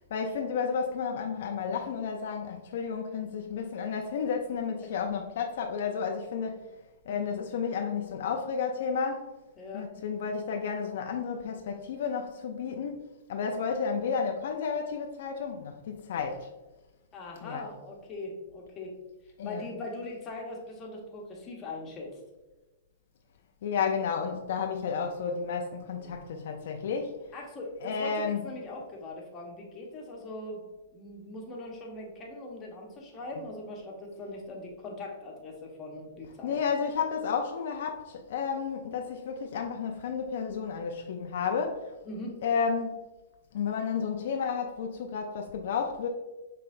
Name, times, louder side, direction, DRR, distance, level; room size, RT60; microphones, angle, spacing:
voice 1, 0.1-6.6 7.1-9.4 9.7-16.5 17.4-17.7 19.4-19.6 23.6-27.2 27.8-28.4 36.4-41.9 42.4-43.0 43.5-46.1, left 6 dB, 65° left, 0.4 m, -32 dB
voice 2, 9.6-9.9 17.1-19.0 19.4-22.1 26.0-26.2 27.3-36.6 42.0-42.4, left 2 dB, 25° left, 1.0 m, -41 dB
5.4 x 3.2 x 2.5 m
hypercardioid pair, 140°, 0 cm